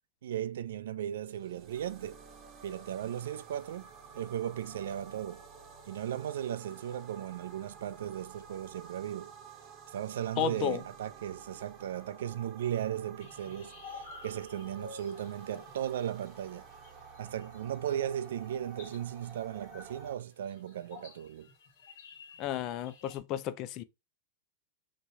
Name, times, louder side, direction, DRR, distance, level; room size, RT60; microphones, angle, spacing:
voice 1, 0.2-2.2 2.6-5.4 5.9-9.3 9.9-16.7 17.2-21.5, right 10 dB, 80° right, 0.3 m, -36 dB
sound 1, 1.2-20.1, right 6 dB, 35° right, 0.8 m, -52 dB
voice 2, 10.4-10.8 22.4-23.8, left 9 dB, 45° left, 0.4 m, -33 dB
sound 2, 13.2-23.2, left 4 dB, 60° left, 1.3 m, -53 dB
3.0 x 2.3 x 4.1 m
hypercardioid pair, 120°, 0 cm